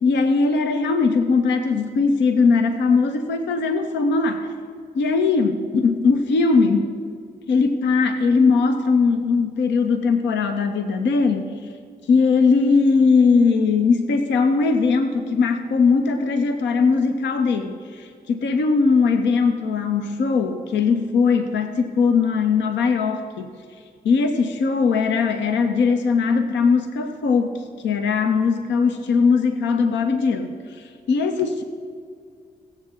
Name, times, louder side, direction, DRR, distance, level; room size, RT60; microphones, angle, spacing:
voice 1, 0.0-4.5 4.9-7.0 7.5-11.5 12.1-23.5 24.0-31.6, left 4 dB, 75° left, 6 dB, 0.7 m, -20 dB
17.0 x 7.5 x 3.7 m, 2.2 s
hypercardioid pair, 45°, 19 cm